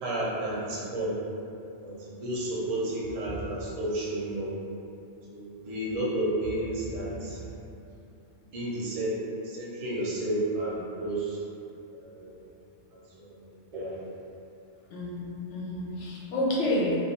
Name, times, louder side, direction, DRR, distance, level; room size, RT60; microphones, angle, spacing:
voice 1, 0.0-1.1 1.8-1.9 2.2-4.5 5.3-7.5 8.5-9.1 9.4-11.4 11.9-12.3 12.9-13.4 13.7-13.9, right 1 dB, 45° right, -7 dB, 0.5 m, -31 dB
voice 2, 14.9-17.0, left 1 dB, 75° left, -5 dB, 0.9 m, -29 dB
2.3 x 2.3 x 2.8 m, 2.7 s
omnidirectional pair, 1.2 m